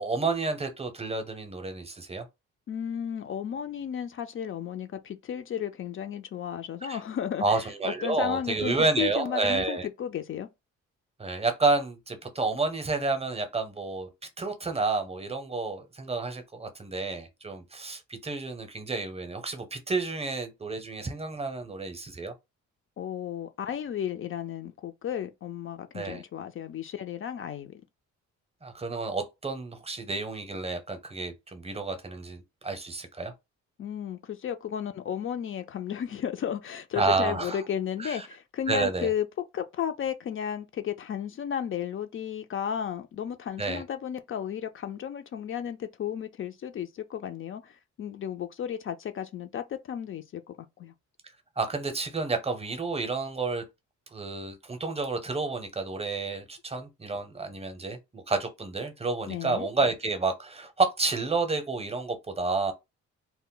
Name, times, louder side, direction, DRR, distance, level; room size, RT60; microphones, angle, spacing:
voice 1, 0.0-2.2 6.8-7.0 7.4-9.9 11.2-14.1 14.4-22.3 25.9-26.2 28.6-33.3 37.0-37.6 38.0-38.3 38.7-39.1 43.6-43.8 51.6-53.6 54.1-62.7, right 3 dB, 20° right, 0.7 m, -30 dB
voice 2, 2.7-10.5 23.0-27.8 33.8-39.3 39.5-50.9 59.3-59.7, left 9 dB, 45° left, 0.4 m, -34 dB
2.1 x 2.1 x 3.7 m
cardioid pair, 90°, 30 cm